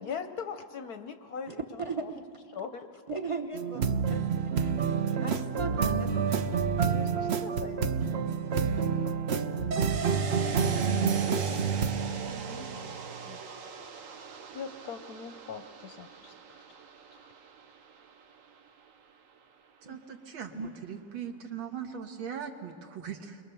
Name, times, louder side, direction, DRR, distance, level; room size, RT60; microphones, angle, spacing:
voice 1, 0.0-2.1 2.5-3.0 6.0-6.1 6.8-7.9 12.1-13.0 13.3-13.8 14.1-16.8 17.1-17.3, left 6 dB, 65° left, 8 dB, 1.0 m, -42 dB
voice 2, 1.5-2.2 3.1-4.7 5.2-6.1 19.8-20.0 20.5-20.7, right 3 dB, 30° right, 4 dB, 0.6 m, -37 dB
sound 1, 3.5-13.2, right 6 dB, 90° right, 0.5 m, -28 dB
sound 2, 9.7-19.1 19.4-19.5, right 5 dB, 50° right, 1.1 m, -41 dB
voice 3, 19.9-20.5 20.8-23.4, right 8 dB, 75° right, 5 dB, 2.3 m, -39 dB
30.0 x 22.5 x 6.9 m, 2.4 s
omnidirectional pair, 2.2 m